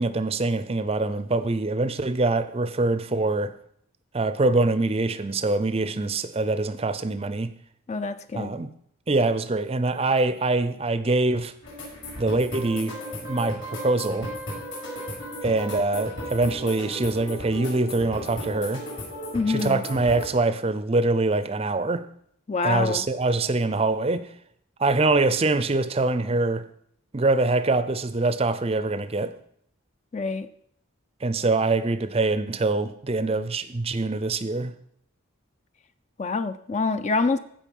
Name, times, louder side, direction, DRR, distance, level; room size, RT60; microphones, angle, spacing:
voice 1, 0.0-3.5 4.1-7.5 8.3-8.7 9.1-11.5 12.2-13.0 13.2-14.3 15.4-18.8 19.5-22.1 22.6-24.3 24.8-26.6 27.1-29.3 31.2-34.7, right 2 dB, 25° right, 0.5 m, -24 dB
voice 2, 7.9-8.5 19.3-19.8 22.5-23.1 30.1-30.5 36.2-37.4, left 4 dB, 30° left, 0.4 m, -26 dB
sound 1, 11.6-20.3, equal, 55° left, 5.6 m, -35 dB
15.5 x 5.4 x 5.4 m
head